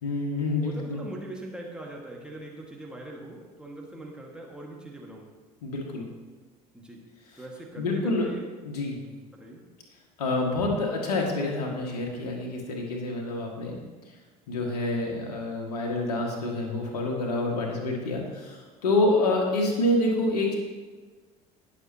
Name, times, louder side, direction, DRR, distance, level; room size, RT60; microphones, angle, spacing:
voice 1, 0.0-1.0 5.6-6.1 7.8-8.3 8.6-9.0 10.2-13.8 14.5-20.6, left 2 dB, 70° left, 0 dB, 2.1 m, -27 dB
voice 2, 0.6-5.3 6.7-7.0 7.4-8.4 9.0-9.6, right 1 dB, 5° right, -2 dB, 2.0 m, -42 dB
20.0 x 6.7 x 3.0 m, 1.4 s
figure-of-eight pair, 65°, 21 cm